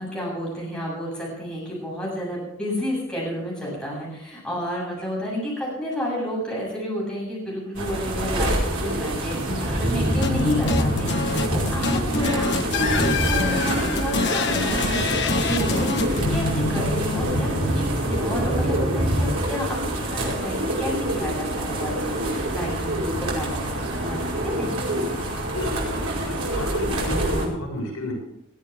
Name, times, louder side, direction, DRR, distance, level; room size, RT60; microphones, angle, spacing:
voice 1, 0.0-17.8 18.1-24.8, equal, 5° left, -5 dB, 7.6 m, -31 dB
sound 1, 7.7-27.5, right 1 dB, 75° right, 5.2 m, -27 dB
sound 2, 9.2-20.0, equal, 30° right, 3.5 m, -29 dB
sound 3, 10.2-18.5, left 3 dB, 50° left, 1.1 m, -26 dB
voice 2, 25.5-28.1, equal, 80° left, -1 dB, 6.7 m, -32 dB
21.5 x 13.5 x 3.6 m, 0.76 s
head